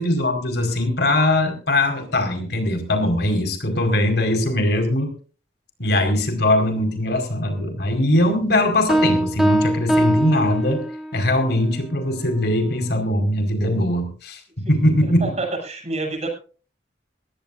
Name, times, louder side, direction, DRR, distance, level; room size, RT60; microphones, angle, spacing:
voice 1, 0.0-5.1 5.8-10.8 11.1-14.4 14.7-15.4, left 1 dB, 65° left, 5 dB, 4.9 m, -21 dB
sound 1, 8.9-11.3, right 1 dB, ahead, 2.3 m, -21 dB
voice 2, 15.0-16.3, right 2 dB, 40° right, 1 dB, 7.1 m, -28 dB
21.5 x 16.0 x 2.6 m, 0.38 s
head